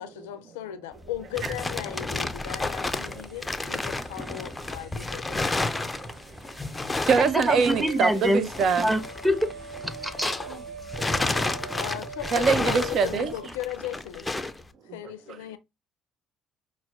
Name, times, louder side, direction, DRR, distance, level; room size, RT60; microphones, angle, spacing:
voice 1, 0.0-5.9 11.8-14.3 14.9-15.6, left 12 dB, 80° left, 0.4 m, -37 dB
sound 1, 1.0-10.6 10.9-14.6, left 2 dB, 15° left, 0.4 m, -31 dB
sound 2, 2.9-11.5, right 4 dB, 35° right, 2.2 m, -50 dB
voice 2, 5.7-6.2 7.1-8.9 12.3-13.3, right 5 dB, 55° right, 0.4 m, -24 dB
voice 3, 7.2-8.4 8.8-9.5 9.8-10.3, equal, 5° right, 0.8 m, -25 dB
sound 3, 7.3-13.5, right 4 dB, 85° right, 1.1 m, -42 dB
5.6 x 2.1 x 2.2 m
hypercardioid pair, 60°, 0 cm